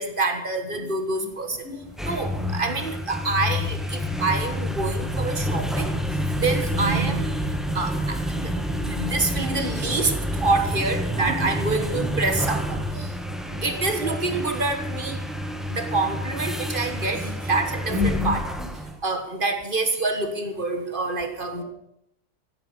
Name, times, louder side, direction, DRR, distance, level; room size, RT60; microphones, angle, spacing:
voice 1, 0.0-1.6 2.0-5.9 6.4-7.3 7.7-13.1 13.6-15.2 15.7-18.4 19.0-21.6, right 3 dB, 30° right, 7 dB, 1.4 m, -27 dB
voice 2, 1.2-1.8 2.3-2.6 4.5-4.6 6.7-7.2 9.1-10.0 11.0-14.5 15.8-15.9 16.7-18.8 21.6-21.7, left 2 dB, 85° left, -1 dB, 4.7 m, -34 dB
sound 1, 1.8-19.0, equal, ahead, 0.7 m, -28 dB
15.0 x 9.1 x 6.9 m, 0.79 s
omnidirectional pair, 2.2 m